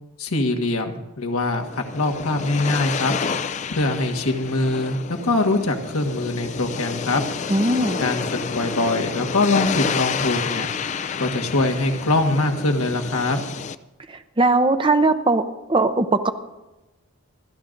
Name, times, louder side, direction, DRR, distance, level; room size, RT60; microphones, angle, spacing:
voice 1, 0.2-3.1 3.7-5.0 5.2-7.2 8.0-10.7 11.2-13.4, left 2 dB, 85° left, 4 dB, 1.5 m, -23 dB
sound 1, 1.5-13.7, left 5 dB, 35° left, 0.4 m, -29 dB
voice 2, 7.5-8.0 14.1-15.4 15.7-16.3, right 2 dB, 25° right, 9 dB, 0.6 m, -19 dB
28.5 x 12.5 x 2.6 m, 1.0 s
head